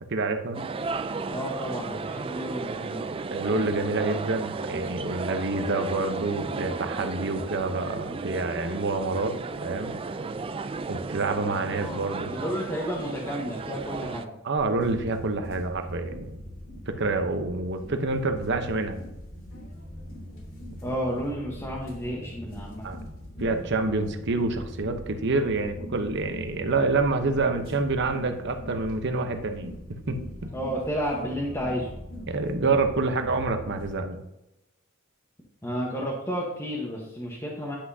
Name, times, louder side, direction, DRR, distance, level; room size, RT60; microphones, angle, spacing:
voice 1, 0.1-0.6 3.3-9.3 9.6-10.0 10.9-12.3 14.4-16.3 16.9-19.0 22.8-23.0 23.4-30.5 32.3-34.2, right 3 dB, 60° right, 7 dB, 0.9 m, -27 dB
sound 1, 0.5-14.3, right 4 dB, 25° right, 0.3 m, -34 dB
voice 2, 1.3-3.0 11.5-14.3 20.8-22.9 30.5-31.9 35.6-37.8, equal, 15° left, -4 dB, 1.2 m, -32 dB
sound 2, 14.6-33.9, equal, 70° left, 2.8 m, -41 dB
10.0 x 6.0 x 2.8 m, 0.91 s
head